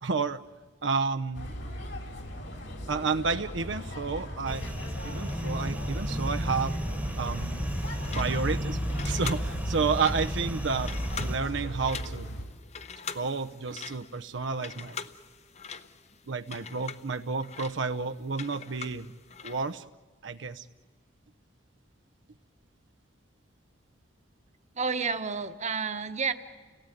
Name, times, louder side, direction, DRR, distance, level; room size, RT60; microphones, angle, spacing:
voice 1, 0.0-0.4 0.8-1.5 2.9-4.6 5.0-6.8 7.2-7.7 8.1-8.8 9.0-12.3 13.1-15.0 16.3-19.1 19.4-19.8 20.2-20.7, right 4 dB, 85° right, 7 dB, 0.8 m, -31 dB
sound 1, 1.3-12.4, equal, 70° left, 4.1 m, -37 dB
sound 2, 4.5-11.4, equal, 10° right, 1.2 m, -34 dB
sound 3, 7.7-19.8, left 6 dB, 40° left, 0.9 m, -43 dB
voice 2, 24.7-26.3, right 5 dB, 40° right, 9 dB, 1.1 m, -30 dB
29.5 x 17.5 x 9.2 m, 1.4 s
head